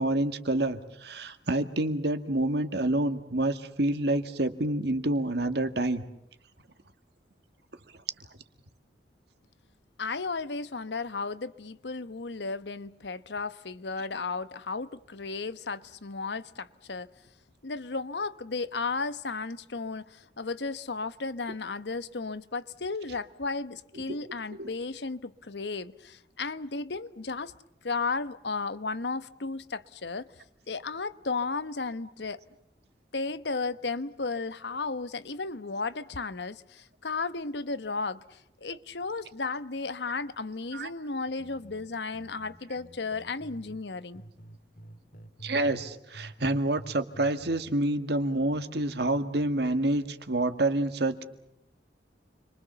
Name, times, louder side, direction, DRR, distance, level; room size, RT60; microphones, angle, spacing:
voice 1, 0.0-6.0 24.1-24.2 24.6-24.7 40.7-40.9 45.4-51.2, right 1 dB, 65° right, 2.0 m, -28 dB
voice 2, 10.0-17.1 17.6-27.5 27.8-30.3 30.7-32.4 33.1-44.2, left 4 dB, 70° left, 1.0 m, -34 dB
sound 1, 41.3-43.8 44.1-45.9 46.1-47.7, right 1 dB, 55° left, 2.3 m, -48 dB
29.5 x 24.0 x 7.0 m
head